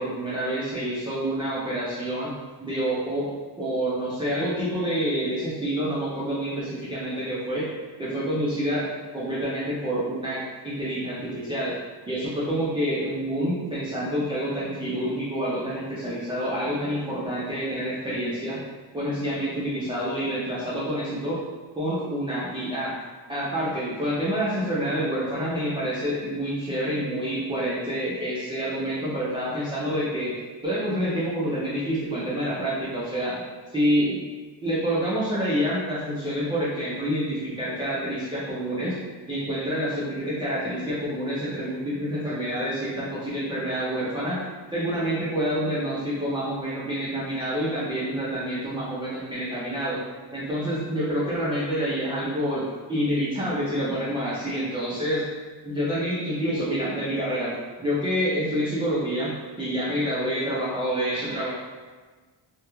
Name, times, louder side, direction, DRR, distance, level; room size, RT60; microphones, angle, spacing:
voice 1, 0.0-2.3 2.6-7.7 8.0-8.9 9.1-11.8 12.1-18.6 18.9-21.4 21.8-22.9 23.3-30.3 30.6-33.4 33.7-34.2 34.6-39.0 39.3-44.4 44.7-50.0 50.3-52.6 52.9-55.2 55.6-57.5 57.8-61.5, equal, 15° right, -9 dB, 0.3 m, -27 dB
2.3 x 2.1 x 2.9 m, 1.4 s
wide cardioid pair, 150°, 45 cm